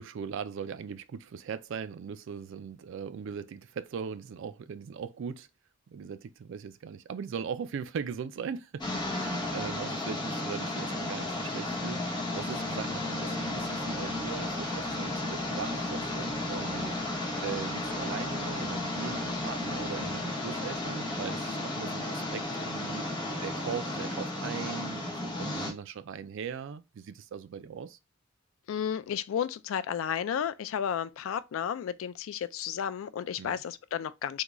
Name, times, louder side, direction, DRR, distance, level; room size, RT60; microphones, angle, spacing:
voice 1, 0.0-5.5 5.9-16.9 17.4-23.1 23.4-28.0 33.4-33.6, right 7 dB, 65° right, 0.3 m, -39 dB
sound 1, 8.8-25.7, left 2 dB, 20° left, 1.0 m, -33 dB
voice 2, 28.7-34.4, left 8 dB, 70° left, 0.3 m, -32 dB
3.7 x 2.2 x 3.0 m
head